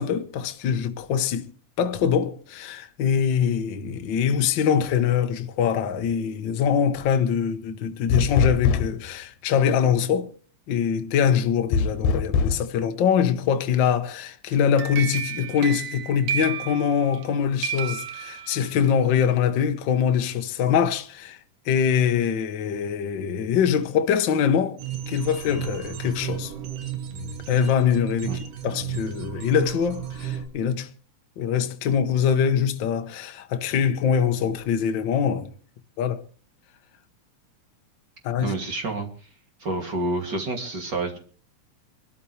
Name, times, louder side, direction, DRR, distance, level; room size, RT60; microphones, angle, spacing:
voice 1, 0.0-1.5 1.8-10.3 10.7-21.4 21.7-24.8 25.1-26.5 27.5-28.4 28.6-30.9 31.4-35.5 36.0-36.2 38.2-38.6, left 8 dB, 70° left, 1.1 m, -23 dB
sound 1, 8.1-9.1 11.7-12.6, left 5 dB, 85° left, 2.5 m, -22 dB
sound 2, 14.5-17.3 17.6-18.9, right 9 dB, 75° right, 2.4 m, -32 dB
sound 3, 24.8-30.5, right 9 dB, 90° right, 3.5 m, -33 dB
voice 2, 38.4-39.1 39.6-41.2, right 2 dB, 35° right, 2.7 m, -28 dB
24.5 x 13.0 x 3.2 m
omnidirectional pair, 3.6 m